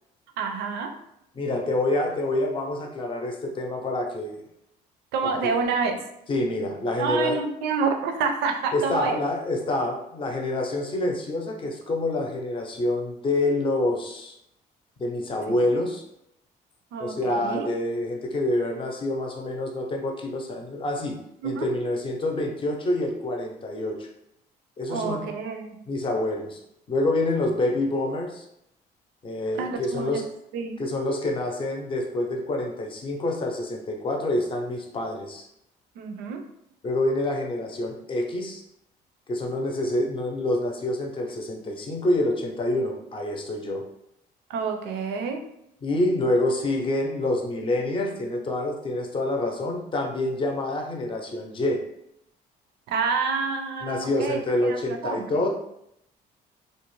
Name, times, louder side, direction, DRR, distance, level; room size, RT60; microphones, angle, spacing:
voice 1, 0.4-0.9 5.1-6.0 7.0-9.2 15.5-15.6 16.9-17.7 21.4-21.7 24.9-25.8 29.5-30.2 30.5-30.9 36.0-36.4 44.5-45.4 52.9-55.4, right 5 dB, 85° right, 5 dB, 0.5 m, -28 dB
voice 2, 1.3-4.4 5.2-5.5 6.3-7.4 8.7-14.3 15.0-16.0 17.0-21.2 21.4-24.1 24.8-25.3 25.9-26.6 26.9-28.5 29.2-30.3 30.8-35.4 36.8-38.6 39.3-43.8 45.8-51.8 53.8-55.5, left 1 dB, 30° left, 1 dB, 0.5 m, -27 dB
2.5 x 2.1 x 3.0 m, 0.77 s
cardioid pair, 110°, 17 cm